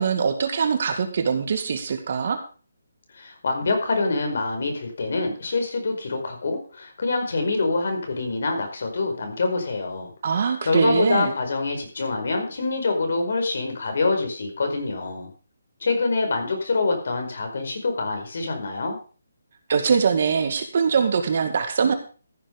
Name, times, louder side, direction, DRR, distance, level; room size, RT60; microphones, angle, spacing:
voice 1, 0.0-2.4 10.2-11.3 19.7-21.9, right 6 dB, 45° right, 6 dB, 2.1 m, -22 dB
voice 2, 3.1-15.3 15.8-19.0, left 3 dB, 55° left, 4 dB, 5.0 m, -25 dB
14.5 x 7.5 x 5.3 m, 0.37 s
hypercardioid pair, 170°, 0 cm